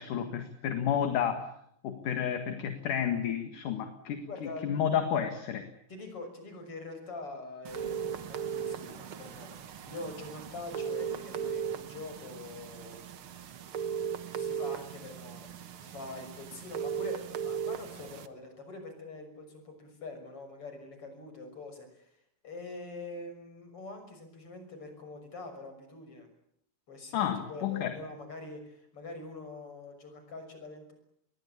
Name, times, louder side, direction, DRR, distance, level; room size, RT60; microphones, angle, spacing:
voice 1, 0.0-1.5 1.8-5.7 27.1-27.9, left 8 dB, 70° left, 7 dB, 3.3 m, -31 dB
voice 2, 4.3-4.7 5.9-13.0 14.3-15.5 15.8-22.1 22.4-26.3 26.9-30.9, left 2 dB, 40° left, 7 dB, 7.0 m, -44 dB
sound 1, 7.6-18.3, right 8 dB, 55° right, 1.6 m, -37 dB
26.0 x 22.0 x 8.7 m, 0.73 s
omnidirectional pair, 3.9 m